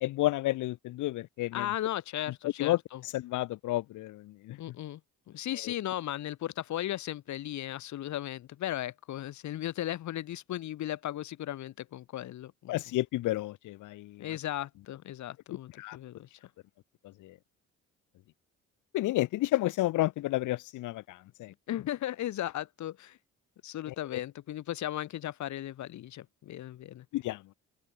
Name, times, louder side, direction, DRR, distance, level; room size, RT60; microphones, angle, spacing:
voice 1, 0.0-1.7 2.4-2.8 3.1-4.6 5.6-5.7 12.7-14.3 15.8-16.0 17.0-17.4 18.9-21.5 23.9-24.0 27.1-27.5, left 17 dB, 85° left, 0.9 m, -31 dB
voice 2, 1.5-3.0 4.6-5.0 5.3-12.8 14.2-16.3 21.7-23.2 23.6-27.0, left 13 dB, 70° left, 1.2 m, -36 dB
open air
cardioid pair, 90°, 30 cm